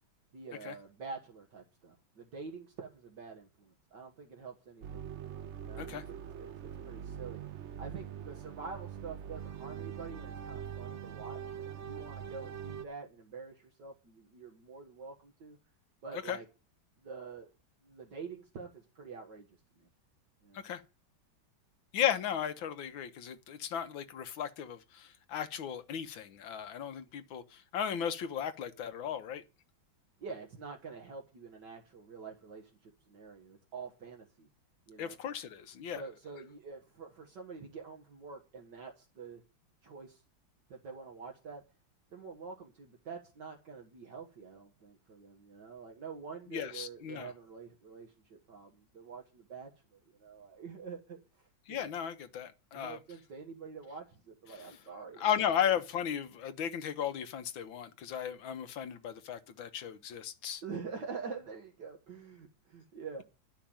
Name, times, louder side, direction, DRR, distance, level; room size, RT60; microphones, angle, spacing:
voice 1, 0.3-5.1 5.6-7.4 7.8-15.6 16.0-16.5 17.0-17.5 17.8-19.9 20.4-20.6 30.2-34.5 34.9-35.2 35.9-39.4 39.8-40.2 40.7-41.6 42.1-51.9 52.7-55.3 60.6-63.2, right 5 dB, 65° right, 2.1 m, -46 dB
sound 1, 4.8-12.8, right 9 dB, 90° right, 0.6 m, -43 dB
voice 2, 21.9-29.4 35.0-36.0 46.5-47.3 51.7-53.0 54.5-54.8 55.2-60.6, left 9 dB, 80° left, 1.7 m, -35 dB
11.5 x 5.8 x 8.8 m
omnidirectional pair, 2.1 m